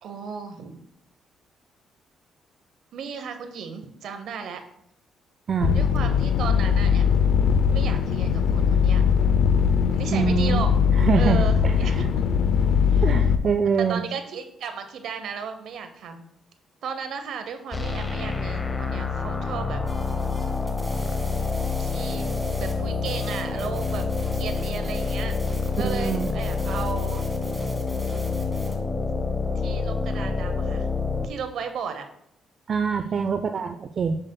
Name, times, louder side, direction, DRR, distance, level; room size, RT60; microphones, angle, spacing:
voice 1, 0.0-0.8 2.9-4.6 5.7-7.4 7.7-9.1 9.9-10.7 11.1-12.1 12.8-13.0 13.8-16.2 16.8-19.8 21.8-22.3 22.6-24.1 24.3-27.2 29.5-30.9 31.2-32.0 32.9-33.2, right 6 dB, 75° right, 7 dB, 0.8 m, -35 dB
sound 1, 5.6-13.4, left 7 dB, 75° left, 0.5 m, -20 dB
voice 2, 10.1-10.6 11.0-12.1 13.0-14.0 25.8-26.3 32.7-34.2, right 6 dB, 50° right, 7 dB, 0.4 m, -25 dB
sound 2, 17.7-31.3, left 4 dB, 25° left, 0.6 m, -27 dB
sound 3, 19.9-28.7, right 1 dB, 15° right, 1.5 m, -44 dB
7.2 x 6.6 x 2.2 m, 0.75 s
cardioid pair, 90°, 0 cm